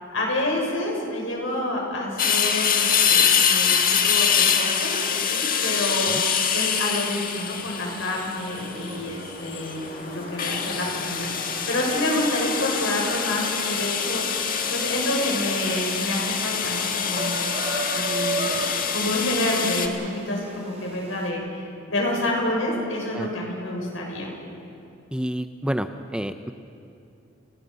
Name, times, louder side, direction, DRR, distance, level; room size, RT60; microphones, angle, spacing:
voice 1, 0.1-6.1 6.5-17.4 17.9-18.7 18.9-24.3, left 1 dB, 80° left, -1 dB, 6.5 m, -28 dB
sound 1, 2.2-19.9, left 7 dB, 45° left, 1.6 m, -25 dB
sound 2, 7.5-21.3, right 3 dB, 35° right, 3.6 m, -37 dB
voice 2, 25.1-26.5, equal, 5° right, 8 dB, 0.6 m, -29 dB
30.0 x 19.0 x 5.5 m, 2.6 s
head